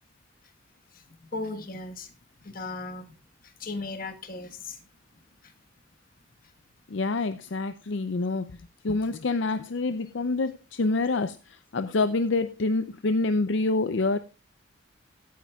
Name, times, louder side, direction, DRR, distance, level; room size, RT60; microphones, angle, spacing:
voice 1, 0.9-2.1 2.4-3.1 3.4-4.8 5.4-5.5, left 3 dB, 45° left, 1.3 m, -37 dB
voice 2, 6.9-8.5 8.8-14.2, left 3 dB, 65° left, 0.5 m, -27 dB
16.5 x 9.3 x 2.3 m
head